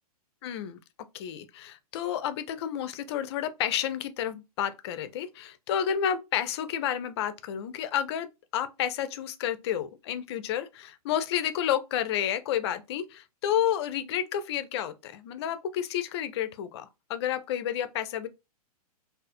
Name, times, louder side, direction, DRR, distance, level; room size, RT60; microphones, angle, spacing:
voice 1, 0.4-0.8 1.1-8.3 8.5-18.3, left 10 dB, 45° left, 0.4 m, -30 dB
2.4 x 2.4 x 2.4 m
figure-of-eight pair, 115°, 20 cm